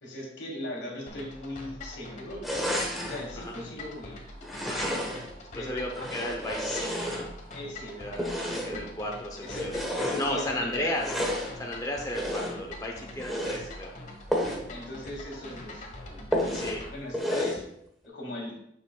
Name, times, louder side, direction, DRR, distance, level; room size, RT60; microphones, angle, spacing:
voice 1, 0.0-2.4 3.0-4.2 5.5-6.1 7.5-8.0 8.5-8.8 9.4-9.7 10.0-10.9 14.7-15.9 16.9-17.6 18.0-18.6, left 1 dB, 80° left, 0 dB, 2.1 m, -38 dB
sound 1, 1.1-16.9, left 2 dB, 45° left, 1.2 m, -44 dB
sound 2, 2.4-3.2 4.4-5.3 5.9-7.6 8.1-8.9 9.4-10.3 10.9-11.5 12.1-12.7 13.1-13.6 14.3-14.7 15.0-15.1 15.5-15.6 16.3-16.8 17.1-17.6, equal, ahead, 1.1 m, -31 dB
voice 2, 5.5-7.3 8.0-8.2 8.6-9.7 10.1-13.9 16.5-16.8, left 1 dB, 20° left, 0 dB, 0.8 m, -34 dB
8.9 x 6.7 x 2.3 m, 0.74 s
head